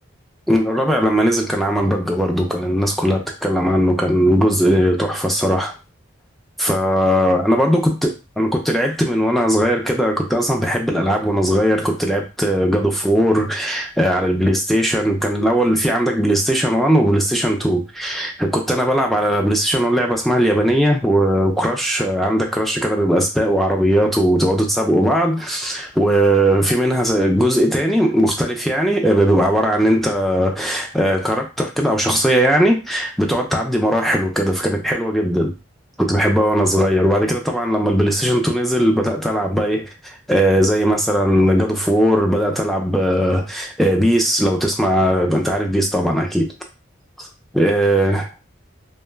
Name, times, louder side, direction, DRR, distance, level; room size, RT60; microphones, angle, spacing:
voice 1, 0.5-5.7 6.6-35.5 36.0-46.5 47.2-47.3 47.5-48.3, equal, ahead, 2 dB, 0.3 m, -18 dB
2.2 x 2.1 x 3.3 m, 0.30 s
head